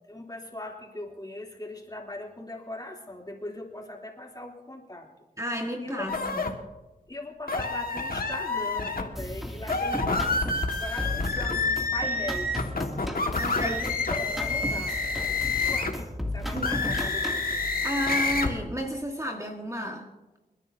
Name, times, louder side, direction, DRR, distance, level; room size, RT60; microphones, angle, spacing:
voice 1, 0.1-5.1 5.8-6.3 7.1-10.5 10.7-12.6 13.6-15.0 15.4-17.6, left 1 dB, 20° left, -1 dB, 3.2 m, -40 dB
voice 2, 5.4-6.5 13.4-13.8 16.5-16.8 17.8-20.1, equal, 20° right, 1 dB, 1.7 m, -32 dB
sound 1, 6.1-6.5 7.5-9.0 9.6-16.0 16.5-18.5, left 3 dB, 60° left, 1.8 m, -28 dB
sound 2, 9.2-17.5, left 1 dB, ahead, 2.6 m, -35 dB
30.0 x 10.0 x 2.8 m, 1.1 s
cardioid pair, 45°, 17 cm